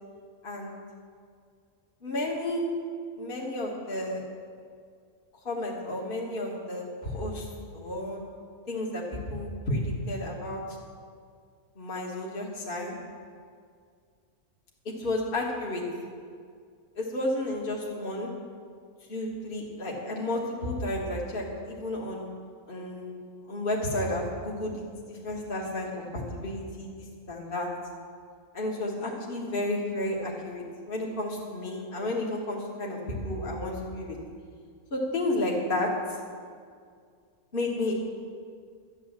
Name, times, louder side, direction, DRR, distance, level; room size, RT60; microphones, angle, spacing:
voice 1, 0.4-0.8 2.0-2.6 3.2-4.2 5.5-7.5 7.7-8.2 8.7-10.6 11.8-13.0 14.9-15.8 17.0-18.3 19.1-22.3 22.7-23.2 23.5-27.7 28.5-34.2 34.9-35.9 37.5-37.9, left 1 dB, 35° left, -3 dB, 1.8 m, -32 dB
12.5 x 9.2 x 7.4 m, 2.2 s
omnidirectional pair, 1.6 m